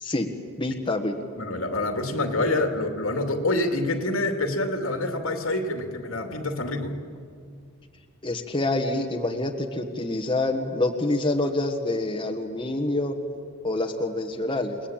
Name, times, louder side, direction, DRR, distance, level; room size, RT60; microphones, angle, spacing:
voice 1, 0.6-1.2 8.2-13.2 13.6-14.8, left 2 dB, 25° left, 3 dB, 1.5 m, -26 dB
voice 2, 1.3-6.9, left 2 dB, 75° left, 5 dB, 2.7 m, -26 dB
29.5 x 20.0 x 8.9 m, 2.2 s
head